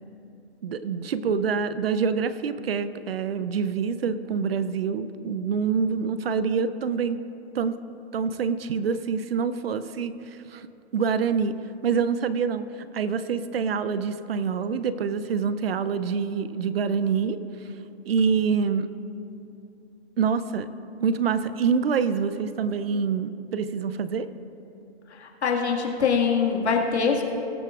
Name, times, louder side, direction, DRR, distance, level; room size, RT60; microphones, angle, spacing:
voice 1, 0.6-7.2 7.5-7.8 8.1-10.1 10.5-10.6 10.9-11.6 11.8-12.7 12.9-17.4 18.1-18.9 20.2-20.7 21.0-24.3, right 6 dB, 65° right, 13 dB, 0.6 m, -26 dB
voice 2, 25.4-27.2, left 6 dB, 80° left, 0 dB, 2.0 m, -23 dB
20.5 x 7.9 x 2.5 m, 2.8 s
hypercardioid pair, 170°, 33 cm